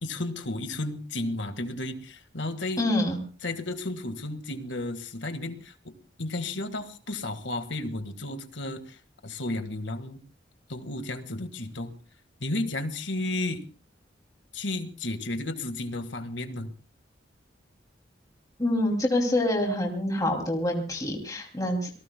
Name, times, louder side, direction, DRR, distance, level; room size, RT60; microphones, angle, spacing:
voice 1, 0.0-2.8 3.4-10.2 10.7-11.9 12.4-13.6 14.5-16.7, left 2 dB, 85° left, 9 dB, 1.7 m, -33 dB
voice 2, 2.8-3.2 18.6-21.9, left 1 dB, 20° left, 1 dB, 2.7 m, -26 dB
27.5 x 19.0 x 2.2 m, 0.38 s
head